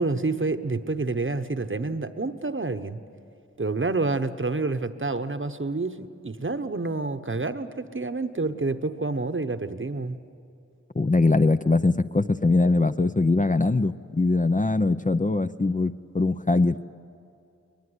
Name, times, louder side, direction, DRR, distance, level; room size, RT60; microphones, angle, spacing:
voice 1, 0.0-3.0 3.6-10.2, right 3 dB, 45° right, 10 dB, 1.0 m, -28 dB
voice 2, 10.9-16.8, left 3 dB, 30° left, 10 dB, 0.5 m, -22 dB
21.0 x 21.0 x 9.7 m, 2.6 s
wide cardioid pair, 40°, 29 cm